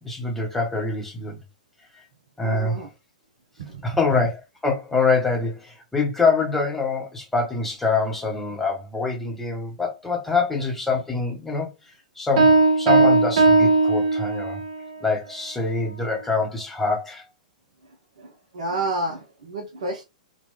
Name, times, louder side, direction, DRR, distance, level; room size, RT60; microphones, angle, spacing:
voice 1, 0.0-1.4 1.9-2.0 2.4-2.8 3.8-14.6 15.0-17.2, left 4 dB, 5° left, 1.0 m, -25 dB
voice 2, 2.4-2.9 3.6-3.9 18.2-20.0, right 2 dB, 60° right, 0.6 m, -30 dB
Piano, 12.4-14.7, right 3 dB, 45° right, 1.2 m, -17 dB
3.0 x 2.2 x 3.4 m
figure-of-eight pair, 105°, 4 cm